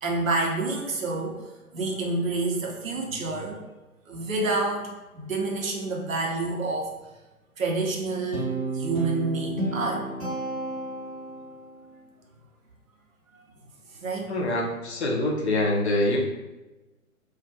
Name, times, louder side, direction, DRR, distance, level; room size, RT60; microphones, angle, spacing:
voice 1, 0.0-1.4 1.7-3.7 4.1-4.9 5.1-6.9 7.6-10.1 14.0-14.3, right 3 dB, 65° right, 0 dB, 0.7 m, -28 dB
Guitar, 8.3-11.6, right 3 dB, 25° right, 0.5 m, -30 dB
voice 2, 14.3-16.2, left 1 dB, 50° left, -1 dB, 0.5 m, -25 dB
2.3 x 2.2 x 2.6 m, 1.1 s
figure-of-eight pair, 130°, 44 cm